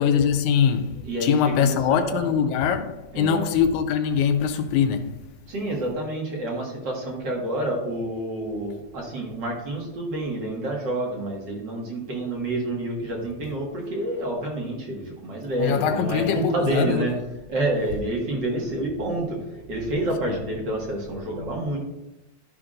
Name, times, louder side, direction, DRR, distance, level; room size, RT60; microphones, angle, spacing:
voice 1, 0.0-5.2 15.6-17.1 20.3-20.4 21.4-21.8, left 7 dB, 85° left, 2.0 m, -23 dB
voice 2, 1.0-2.3 3.1-3.5 5.5-17.1 17.5-21.8, right 1 dB, 45° right, 2.0 m, -28 dB
12.5 x 5.9 x 2.5 m
omnidirectional pair, 3.3 m